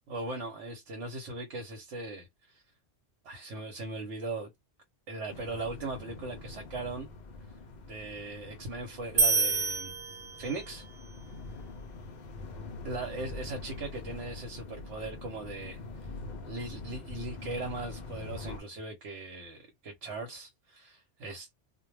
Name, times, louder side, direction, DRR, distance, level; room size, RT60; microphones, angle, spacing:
voice 1, 0.1-2.6 3.2-4.5 5.1-7.1 7.9-9.9 10.4-10.8 12.8-15.8 16.4-21.5, right 2 dB, 80° right, 1.1 m, -39 dB
sound 1, 5.3-18.6, left 3 dB, 60° left, 0.4 m, -44 dB
sound 2, 9.2-10.8, right 4 dB, 55° right, 0.6 m, -28 dB
2.2 x 2.1 x 3.1 m
omnidirectional pair, 1.2 m